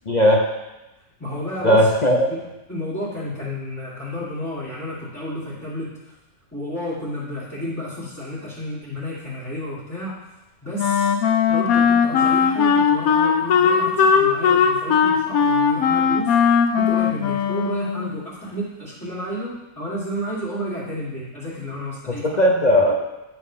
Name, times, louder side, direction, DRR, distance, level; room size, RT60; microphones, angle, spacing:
voice 1, 0.1-0.4 1.6-2.3 22.1-23.0, equal, 40° left, -1 dB, 0.7 m, -17 dB
voice 2, 1.2-1.8 2.3-6.1 6.5-10.2 10.6-11.1 11.5-16.4 16.7-22.3, equal, 10° left, -10 dB, 1.8 m, -31 dB
Wind instrument woodwind instrument, 10.8-18.2, left 6 dB, 75° left, 1.1 m, -18 dB
8.6 x 4.7 x 5.5 m, 1.0 s
omnidirectional pair, 1.5 m